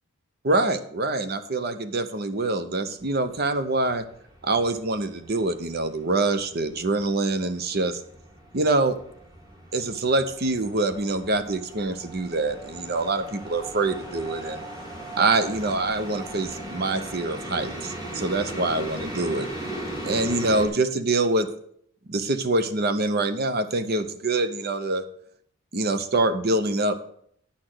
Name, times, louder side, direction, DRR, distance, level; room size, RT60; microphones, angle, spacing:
voice 1, 0.4-4.0 4.4-8.0 8.5-9.0 9.7-14.6 15.2-19.5 20.0-21.5 22.1-25.0 25.7-27.0, right 2 dB, 45° right, 10 dB, 0.7 m, -25 dB
sound 1, 3.0-20.7, right 1 dB, 15° right, 2.2 m, -38 dB
9.9 x 4.3 x 7.7 m, 0.65 s
head